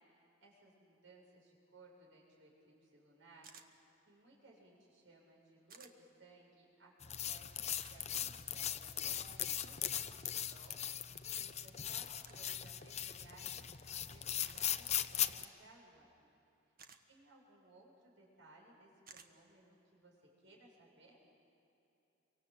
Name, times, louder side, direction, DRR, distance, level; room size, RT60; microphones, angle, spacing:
voice 1, 0.2-3.5 4.1-7.5 7.9-13.6 13.9-16.1 17.1-21.2, right 2 dB, 75° right, -2 dB, 7.1 m, -62 dB
sound 1, 3.4-3.7 5.7-5.9 7.7-8.0 9.9-10.1 12.2-12.5 14.4-14.7 16.8-17.0 19.1-19.3, right 6 dB, 50° right, 1.5 m, -57 dB
sound 2, 7.0-15.4, left 10 dB, 35° left, 0.8 m, -39 dB
29.5 x 25.0 x 8.0 m, 2.9 s
head